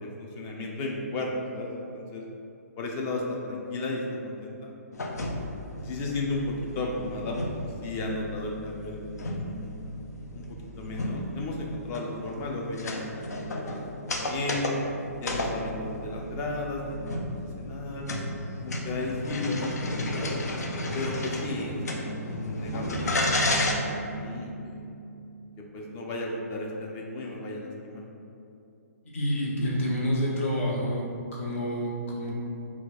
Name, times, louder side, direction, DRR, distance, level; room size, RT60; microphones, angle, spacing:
voice 1, 0.0-2.2 2.8-4.7 5.8-9.8 10.3-13.1 13.3-14.8 15.2-18.1 18.6-20.5 20.9-23.4 23.7-24.8 25.6-28.0, left 2 dB, 25° left, -1 dB, 0.5 m, -34 dB
sound 1, 4.9-23.7, left 1 dB, 85° left, 0.6 m, -33 dB
sound 2, 22.7-27.0, right 3 dB, 35° right, 0.4 m, -39 dB
voice 2, 29.1-31.0 31.3-32.3, equal, 50° left, -4 dB, 1.0 m, -28 dB
4.3 x 2.4 x 4.2 m, 2.6 s
hypercardioid pair, 150°, 9 cm